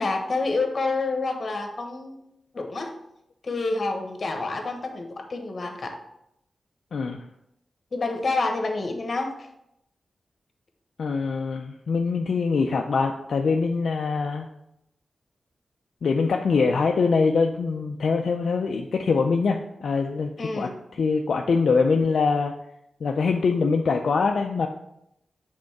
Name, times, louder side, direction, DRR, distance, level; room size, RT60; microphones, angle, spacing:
voice 1, 0.0-2.3 2.5-2.9 3.4-6.0 7.9-9.3 20.4-20.8, left 3 dB, 55° left, 4 dB, 1.1 m, -28 dB
voice 2, 6.9-7.2 11.0-14.5 16.0-22.5 23.0-24.7, left 4 dB, 75° left, 2 dB, 0.4 m, -23 dB
5.3 x 3.7 x 5.8 m, 0.79 s
cardioid pair, 75°, 0 cm